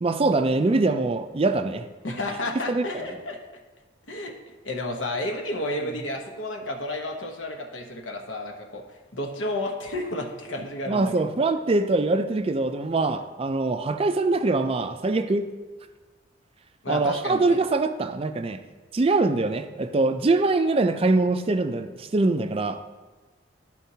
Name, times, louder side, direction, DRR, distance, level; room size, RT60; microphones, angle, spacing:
voice 1, 0.0-1.9 2.7-3.0 10.9-15.5 16.9-18.6 18.9-22.8, right 3 dB, 30° right, 9 dB, 0.4 m, -23 dB
voice 2, 2.0-3.4 4.1-4.3 4.6-8.8 9.1-11.1 16.8-17.6, left 1 dB, 75° left, 2 dB, 1.1 m, -31 dB
13.0 x 4.5 x 2.8 m, 1.3 s
head